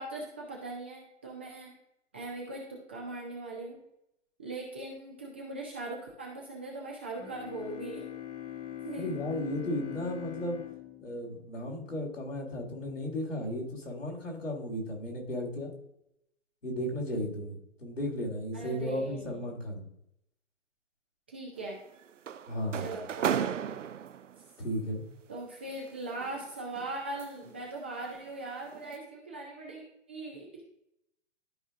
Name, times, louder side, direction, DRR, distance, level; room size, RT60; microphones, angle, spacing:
voice 1, 0.0-1.7 2.1-3.8 4.4-8.0 8.8-9.2 18.5-19.5 21.3-21.8 22.8-23.8 25.3-30.5, right 2 dB, 10° right, -2 dB, 0.3 m, -40 dB
Bowed string instrument, 7.2-12.1, left 12 dB, 70° left, 1.5 m, -42 dB
voice 2, 9.0-10.6 11.0-15.7 16.6-19.9 22.5-22.9 24.6-25.0, equal, 90° left, -2 dB, 3.0 m, -35 dB
sound 1, 21.6-24.5 25.7-27.6 28.0-28.3 28.7-29.0, right 8 dB, 85° right, 0.6 m, -35 dB
12.5 x 4.8 x 2.5 m, 0.81 s
figure-of-eight pair, 130°, 36 cm